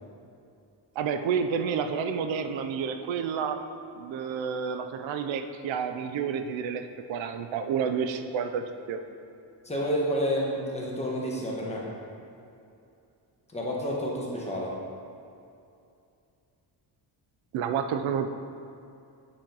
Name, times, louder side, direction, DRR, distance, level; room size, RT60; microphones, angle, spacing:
voice 1, 1.0-3.6 4.0-9.0 17.5-18.3, right 6 dB, 85° right, 7 dB, 0.6 m, -30 dB
voice 2, 9.6-11.9 13.5-14.7, equal, 15° left, -4 dB, 1.1 m, -29 dB
8.8 x 4.4 x 3.9 m, 2.6 s
wide cardioid pair, 160°, 45 cm